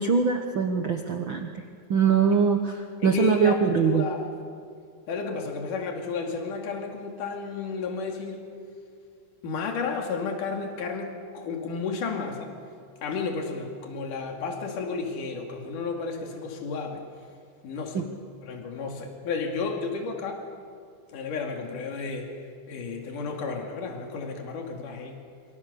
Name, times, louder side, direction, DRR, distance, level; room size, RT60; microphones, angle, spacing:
voice 1, 0.0-1.6 1.9-4.0 17.9-18.0, right 6 dB, 90° right, 4 dB, 1.0 m, -23 dB
voice 2, 3.0-4.2 5.1-8.4 9.4-12.5 13.0-17.0 17.6-18.1 18.4-20.4 21.1-22.3 22.7-25.2, left 4 dB, 65° left, 2 dB, 4.0 m, -32 dB
27.0 x 24.5 x 6.9 m, 2.3 s
omnidirectional pair, 4.1 m